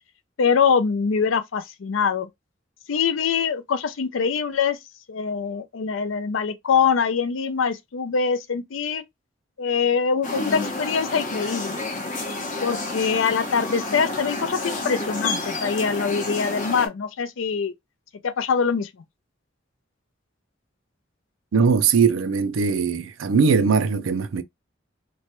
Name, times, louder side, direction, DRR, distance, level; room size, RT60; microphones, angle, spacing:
voice 1, 0.4-2.3 2.9-4.8 5.1-9.0 9.6-11.8 12.6-17.7 18.2-18.9, left 6 dB, 75° left, 0.5 m, -23 dB
sound 1, 10.2-16.9, left 2 dB, 40° left, 0.7 m, -30 dB
voice 2, 21.5-24.4, right 5 dB, 85° right, 0.4 m, -20 dB
3.0 x 2.2 x 2.9 m
head